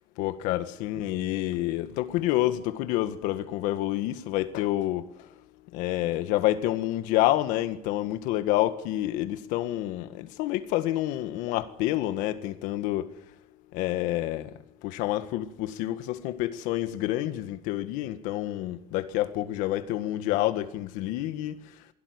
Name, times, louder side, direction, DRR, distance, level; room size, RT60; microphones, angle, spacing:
voice 1, 0.2-5.4 5.7-13.1 13.7-21.6, left 14 dB, 90° left, 1.7 m, -28 dB
22.0 x 16.5 x 9.7 m
cardioid pair, 160°, 13 cm